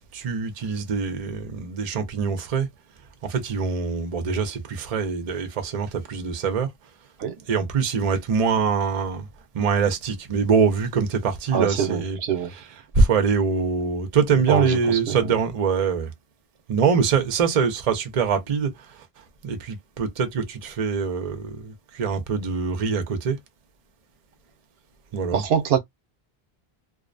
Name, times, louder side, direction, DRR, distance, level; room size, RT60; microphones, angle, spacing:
voice 1, 0.1-2.7 3.2-6.7 7.5-9.3 9.5-12.2 12.5-12.7 12.9-16.1 16.7-18.7 19.4-23.4 25.1-25.4, right 5 dB, 45° right, 0.6 m, -24 dB
voice 2, 11.5-12.5 14.5-15.2 25.3-25.8, right 7 dB, 75° right, 0.8 m, -24 dB
2.6 x 2.1 x 2.5 m
omnidirectional pair, 1.1 m